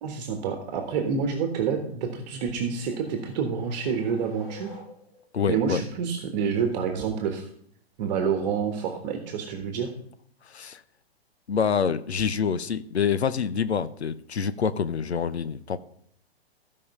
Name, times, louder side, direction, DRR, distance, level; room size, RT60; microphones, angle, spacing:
voice 1, 0.0-4.8 5.5-7.5 8.0-9.9, right 6 dB, 40° right, 5 dB, 1.5 m, -28 dB
sound 1, 2.2-5.4, left 1 dB, 35° left, 5.0 m, -49 dB
voice 2, 5.3-5.8 10.4-10.8 11.5-15.8, left 6 dB, 85° left, 14 dB, 0.7 m, -26 dB
15.0 x 5.4 x 5.4 m, 0.63 s
hypercardioid pair, 120°, 32 cm